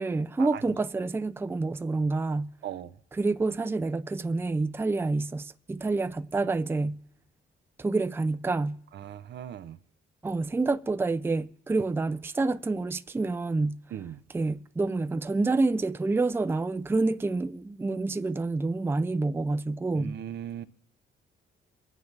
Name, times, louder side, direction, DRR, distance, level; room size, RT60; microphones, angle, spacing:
voice 1, 0.0-2.5 3.2-7.0 7.8-8.8 10.2-13.8 14.3-20.2, right 3 dB, 10° right, 0.4 m, -28 dB
voice 2, 2.6-3.0 8.9-9.8 13.9-14.2 19.9-20.7, right 10 dB, 60° right, 0.6 m, -38 dB
26.0 x 9.4 x 3.3 m
cardioid pair, 90°, 20 cm